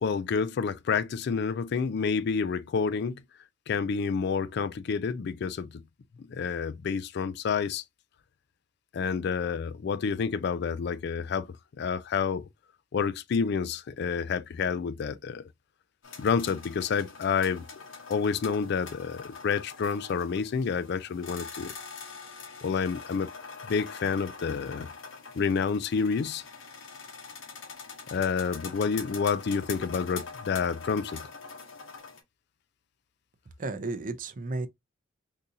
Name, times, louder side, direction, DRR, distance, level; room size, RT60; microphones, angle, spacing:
voice 1, 0.0-3.2 3.7-5.8 6.3-7.8 8.9-11.5 11.8-12.5 12.9-15.4 16.2-17.7 18.1-21.7 22.6-23.3 23.7-24.9 25.4-26.4 28.1-31.3, left 5 dB, 55° left, 0.3 m, -29 dB
sound 1, 16.0-32.2, left 5 dB, 85° left, 1.2 m, -44 dB
voice 2, 33.6-34.7, right 3 dB, 45° right, 0.5 m, -33 dB
3.7 x 2.7 x 2.7 m
head